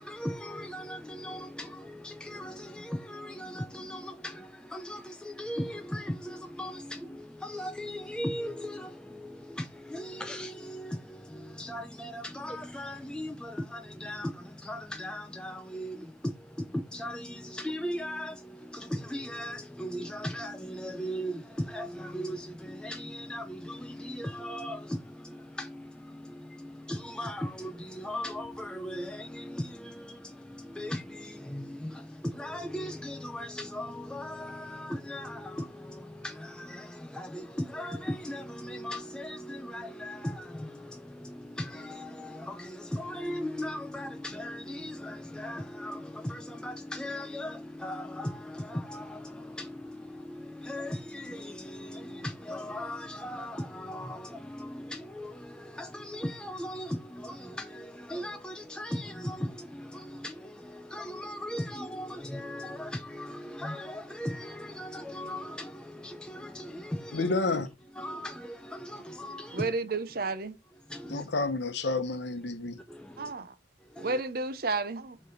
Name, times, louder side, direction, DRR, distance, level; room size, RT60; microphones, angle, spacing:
voice 1, 0.0-67.3 68.0-69.7 70.9-71.3 72.9-73.3 73.9-74.2, left 1 dB, 5° left, 0.3 m, -38 dB
voice 2, 67.1-67.7 71.1-72.8, left 3 dB, 65° left, 0.8 m, -30 dB
voice 3, 69.5-70.6 73.2-73.5 74.0-75.2, right 3 dB, 55° right, 0.6 m, -31 dB
6.6 x 3.2 x 5.5 m
head